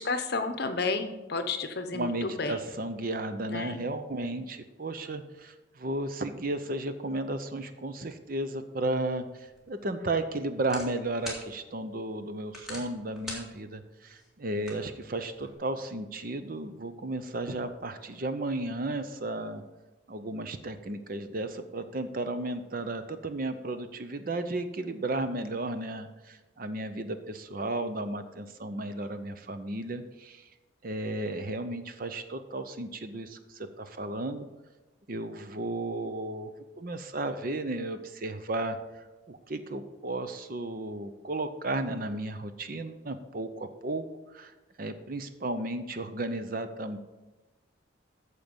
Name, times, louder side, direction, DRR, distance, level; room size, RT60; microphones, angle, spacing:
voice 1, 0.0-2.6 3.5-3.8, left 3 dB, 50° left, 8 dB, 0.8 m, -31 dB
voice 2, 1.9-19.6 20.1-30.4 30.8-34.5 35.1-38.8 39.3-44.1 44.3-44.5 44.8-47.0, right 2 dB, 45° right, 9 dB, 0.6 m, -34 dB
sound 1, 9.5-15.5, left 1 dB, ahead, 2.0 m, -46 dB
9.0 x 6.7 x 5.3 m, 1.2 s
head